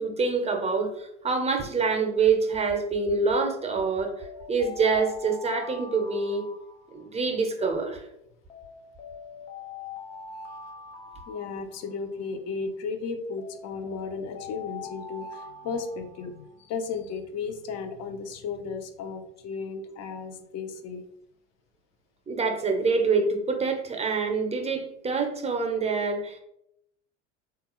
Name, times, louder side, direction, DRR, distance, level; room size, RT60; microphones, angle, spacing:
voice 1, 0.0-4.1 4.5-6.5 6.9-8.0 22.3-26.4, right 4 dB, 20° right, 3 dB, 0.6 m, -26 dB
sound 1, 4.2-7.4 8.5-12.3 13.4-16.6, left 5 dB, 85° left, 0.6 m, -43 dB
voice 2, 11.3-21.0, left 5 dB, 45° left, 8 dB, 0.6 m, -34 dB
3.5 x 2.4 x 3.0 m, 0.79 s
hypercardioid pair, 80°, 36 cm